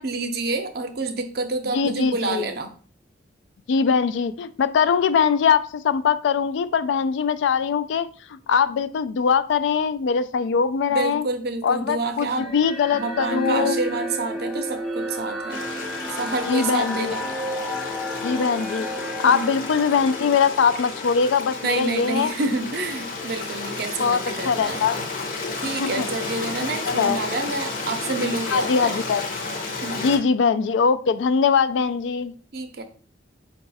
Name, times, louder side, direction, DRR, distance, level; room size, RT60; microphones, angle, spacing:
voice 1, 0.0-2.7 10.9-12.5 12.9-15.6 16.2-17.3 19.2-19.4 21.6-24.9 25.6-29.0 29.8-30.1 32.5-32.8, right 3 dB, 55° right, 7 dB, 0.5 m, -28 dB
voice 2, 1.7-2.5 3.7-11.2 11.6-13.8 16.4-17.1 18.2-22.3 24.0-25.0 25.8-26.0 26.8-27.2 28.5-29.3 30.0-32.3, left 6 dB, 75° left, 14 dB, 0.3 m, -22 dB
sound 1, 12.4-21.9, equal, ahead, 0.5 m, -32 dB
Stream, 15.5-30.2, left 3 dB, 45° left, 0.7 m, -32 dB
4.7 x 2.3 x 4.0 m, 0.42 s
head